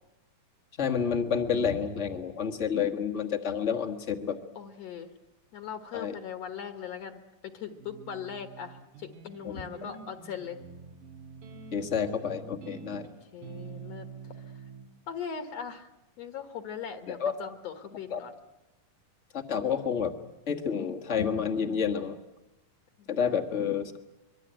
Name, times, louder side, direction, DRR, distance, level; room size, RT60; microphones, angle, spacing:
voice 1, 0.8-4.4 5.9-6.2 9.4-9.6 9.9-10.0 11.7-13.1 17.1-17.4 18.1-18.2 19.3-20.1 20.5-22.2 23.1-24.0, left 7 dB, 40° left, 4 dB, 1.0 m, -29 dB
voice 2, 4.6-5.1 5.5-10.6 12.8-14.7 15.1-15.9 16.2-18.3 23.0-23.4, left 7 dB, 60° left, 8 dB, 2.1 m, -40 dB
sound 1, 7.8-14.9, right 5 dB, 85° right, 4.0 m, -46 dB
25.0 x 22.5 x 8.9 m, 0.94 s
omnidirectional pair, 3.7 m